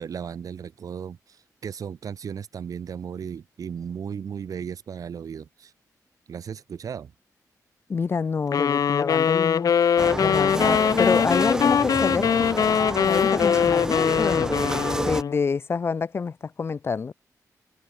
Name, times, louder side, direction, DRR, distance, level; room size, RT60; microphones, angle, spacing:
voice 1, 0.0-1.4 1.6-5.7 6.3-7.1, right 7 dB, 65° right, 1.3 m, -35 dB
voice 2, 7.9-9.7 10.2-12.5 13.1-14.6 15.0-17.1, left 5 dB, 40° left, 0.6 m, -27 dB
sound 1, 8.5-15.5, left 8 dB, 65° left, 1.0 m, -22 dB
sound 2, 10.0-15.2, right 1 dB, 10° right, 0.4 m, -29 dB
wide cardioid pair, 155°, 7 cm